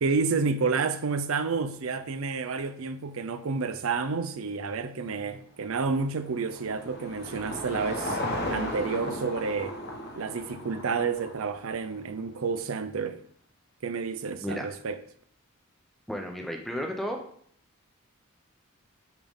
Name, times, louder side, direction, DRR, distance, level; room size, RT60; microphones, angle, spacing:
voice 1, 0.0-8.2 8.5-9.8 10.2-13.2 13.8-15.0, right 4 dB, 75° right, 0.5 m, -30 dB
Car passing by / Engine, 5.6-12.1, left 1 dB, 50° left, 1.2 m, -36 dB
voice 2, 16.1-17.2, equal, ahead, 0.7 m, -33 dB
8.9 x 3.8 x 3.6 m
head